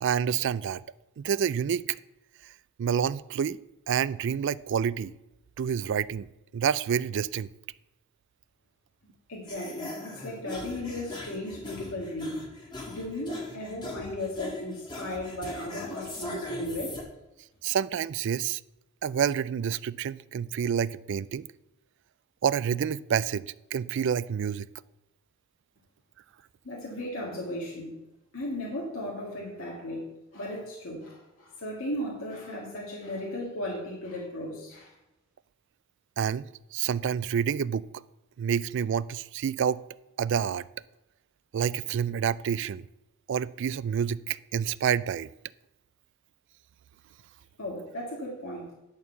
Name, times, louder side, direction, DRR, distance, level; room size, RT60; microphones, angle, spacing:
voice 1, 0.0-0.8 1.2-2.0 2.8-3.6 3.9-5.1 5.6-6.3 6.5-7.5 17.6-18.6 19.0-21.5 22.4-24.7 36.2-36.4 36.7-37.9 38.4-39.8 40.2-40.6 41.5-42.8 43.3-45.3, right 8 dB, 55° right, 19 dB, 0.3 m, -28 dB
voice 2, 9.3-12.5 12.9-17.0 26.6-28.0 28.3-30.0 30.3-34.9 47.6-48.7, left 1 dB, 65° left, -3 dB, 2.0 m, -36 dB
sound 1, 9.5-17.0, left 2 dB, 20° left, 2.0 m, -40 dB
11.0 x 4.6 x 7.0 m, 0.95 s
head